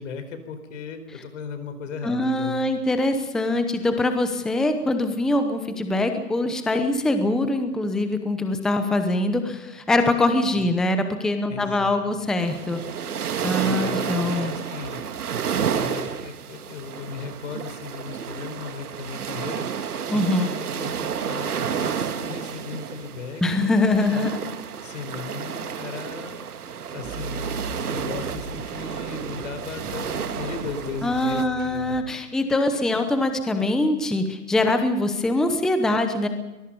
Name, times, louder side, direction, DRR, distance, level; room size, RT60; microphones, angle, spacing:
voice 1, 0.0-2.7 10.5-10.7 11.5-12.1 13.6-15.0 15.7-19.7 20.1-23.7 24.1-24.3 24.8-26.5 26.9-31.4 31.7-32.0, left 5 dB, 55° left, 9 dB, 4.6 m, -36 dB
voice 2, 2.0-12.8 13.4-14.5 20.1-20.5 23.4-24.3 31.0-36.3, left 2 dB, ahead, 8 dB, 0.8 m, -23 dB
sound 1, 12.4-31.5, right 7 dB, 75° right, 1.9 m, -31 dB
sound 2, 27.0-32.0 32.5-33.0, right 4 dB, 20° right, 4.5 m, -39 dB
23.5 x 21.0 x 5.4 m, 1.1 s
hypercardioid pair, 145°, 46 cm